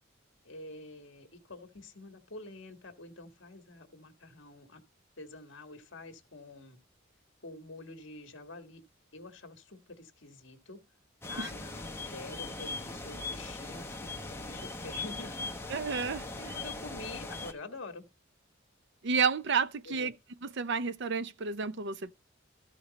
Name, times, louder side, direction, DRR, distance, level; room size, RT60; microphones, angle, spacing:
voice 1, 0.4-4.8 5.2-6.8 7.4-8.8 9.1-10.8 11.3-15.6 16.3-18.0 19.8-20.1, left 2 dB, 65° left, 1.6 m, -47 dB
sound 1, 11.2-17.5, left 3 dB, 15° left, 1.0 m, -40 dB
voice 2, 15.7-16.2 19.0-20.1 20.6-22.1, right 5 dB, 60° right, 0.6 m, -30 dB
14.0 x 5.1 x 4.0 m
head